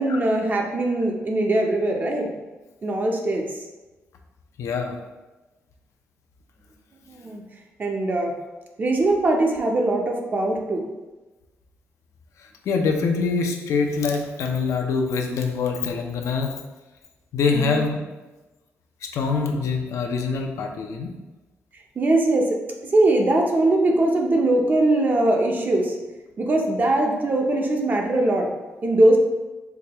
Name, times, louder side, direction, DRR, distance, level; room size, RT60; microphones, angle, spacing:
voice 1, 0.0-2.3 2.8-3.4 7.1-7.4 7.8-8.3 8.8-10.9 17.5-17.8 22.0-22.6 22.9-25.9 26.4-28.5 28.8-29.2, right 2 dB, 35° right, 2 dB, 0.5 m, -21 dB
voice 2, 4.6-5.0 12.7-16.6 17.3-18.0 19.0-21.1, left 4 dB, 85° left, 3 dB, 0.5 m, -24 dB
4.6 x 2.2 x 2.9 m, 1.1 s
cardioid pair, 110°, 5 cm